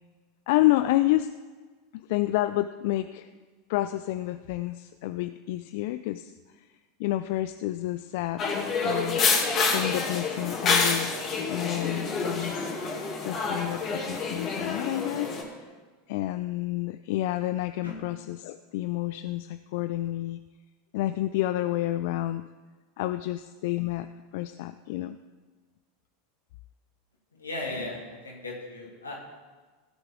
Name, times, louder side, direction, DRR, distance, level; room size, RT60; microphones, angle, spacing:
voice 1, 0.5-1.3 1.9-3.3 3.7-6.3 6.6-6.7 7.0-8.4 8.8-9.2 9.7-11.1 11.5-12.7 13.2-15.7 16.1-20.4 20.9-22.5 23.0-25.2, left 16 dB, 60° left, 11 dB, 0.3 m, -29 dB
sound 1, 8.4-15.4, left 4 dB, 40° left, 2.4 m, -28 dB
voice 2, 27.3-29.1, left 2 dB, 85° left, -2 dB, 2.7 m, -36 dB
16.0 x 8.0 x 3.7 m, 1.4 s
figure-of-eight pair, 85°, 0 cm